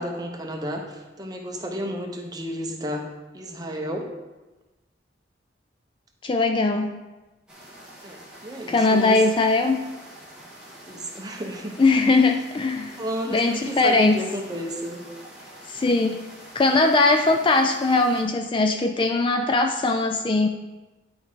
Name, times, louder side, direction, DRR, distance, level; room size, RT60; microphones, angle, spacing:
voice 1, 0.0-3.1 3.3-4.1 8.0-9.2 10.9-11.8 13.0-15.0, equal, 20° right, 2 dB, 0.8 m, -32 dB
voice 2, 6.2-6.9 8.7-9.8 11.8-13.0 13.3-14.2 15.7-16.2 16.5-20.5, left 3 dB, 25° left, 5 dB, 0.3 m, -20 dB
sound 1, 7.5-18.2, right 1 dB, 5° right, 1.9 m, -46 dB
10.5 x 4.8 x 3.7 m, 1.1 s
head